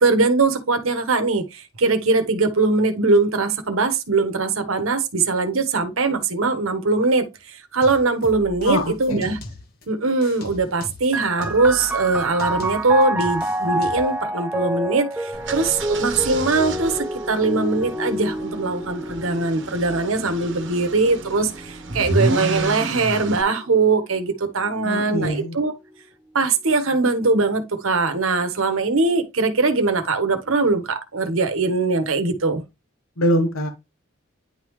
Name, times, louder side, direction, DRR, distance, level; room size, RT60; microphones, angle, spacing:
voice 1, 0.0-9.4 9.9-25.7 26.3-32.6, right 3 dB, 80° right, 1.2 m, -21 dB
sound 1, 7.8-9.8 10.2-14.2, left 2 dB, 50° left, 1.2 m, -39 dB
voice 2, 8.6-9.3 24.8-25.6 33.2-33.7, equal, 90° left, 1.1 m, -23 dB
sound 2, 11.1-24.4 25.2-26.0, right 1 dB, 5° right, 0.5 m, -29 dB
sound 3, 15.3-23.4, right 2 dB, 60° right, 1.2 m, -30 dB
10.0 x 3.6 x 3.1 m
head